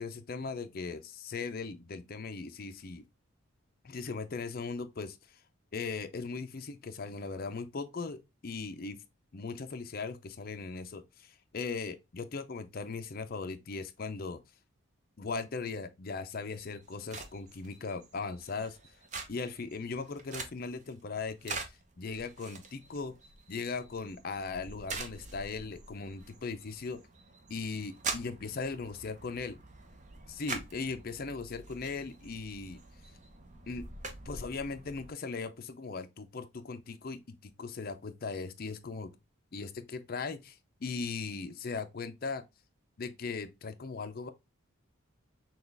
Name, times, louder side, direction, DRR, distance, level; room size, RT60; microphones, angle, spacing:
voice 1, 0.0-3.0 3.8-5.4 5.7-9.0 9.3-14.4 15.2-18.8 19.3-23.2 23.5-27.0 27.5-29.6 30.3-32.8 33.7-33.9 34.3-39.1 39.5-42.4 43.0-44.3, left 4 dB, 45° left, 0.5 m, -38 dB
sound 1, 16.4-35.1, right 4 dB, 35° right, 0.6 m, -45 dB
6.0 x 2.3 x 3.3 m
head